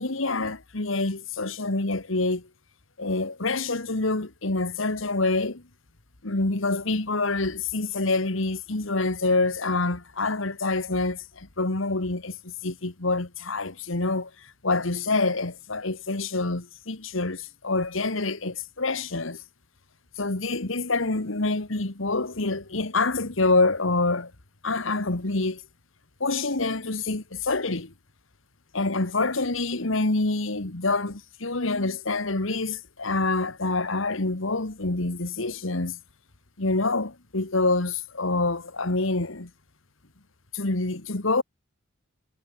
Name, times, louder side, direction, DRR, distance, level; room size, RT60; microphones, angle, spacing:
voice 1, 0.0-2.5 3.0-5.6 6.2-14.3 14.6-19.4 20.2-24.3 24.6-25.6 26.2-27.9 28.7-36.0 36.6-39.5 40.5-41.4, left 3 dB, 75° left, 1.9 m, -26 dB
head